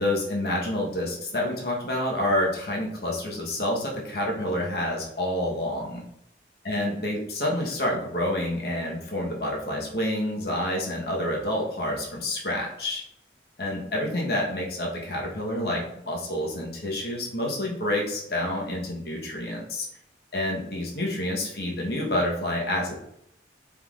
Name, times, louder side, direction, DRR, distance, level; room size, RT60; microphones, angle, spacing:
voice 1, 0.0-6.0 6.6-13.0 13.6-19.9 20.3-23.0, left 1 dB, 60° left, -1 dB, 1.1 m, -28 dB
4.5 x 3.7 x 2.4 m, 0.74 s
head